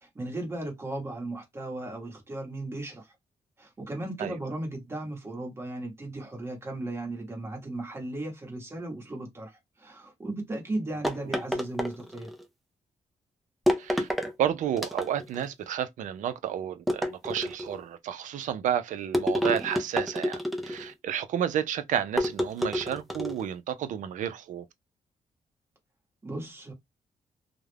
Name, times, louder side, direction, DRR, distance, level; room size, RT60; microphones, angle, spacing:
voice 1, 0.0-3.1 3.6-12.3 26.2-26.7, right 2 dB, 20° right, 1.0 m, -36 dB
sound 1, 11.0-12.4 13.7-14.3 14.8-15.4 16.9-17.8 19.1-20.9 22.2-23.5, equal, ahead, 0.4 m, -29 dB
voice 2, 13.8-14.1 14.4-24.7, right 10 dB, 75° right, 0.4 m, -31 dB
2.3 x 2.1 x 3.2 m
wide cardioid pair, 175°, 13 cm